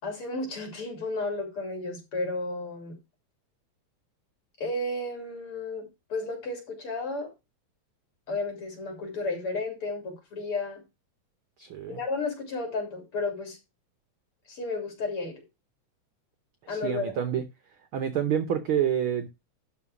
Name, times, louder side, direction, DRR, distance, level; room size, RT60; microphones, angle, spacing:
voice 1, 0.0-3.0 4.6-7.3 8.3-10.8 11.9-13.6 14.5-15.3 16.7-17.1, left 3 dB, 45° left, 4.0 m, -33 dB
voice 2, 11.6-12.0 16.7-17.4 17.9-19.3, right 9 dB, 70° right, 1.2 m, -28 dB
12.0 x 3.9 x 6.2 m
omnidirectional pair, 3.4 m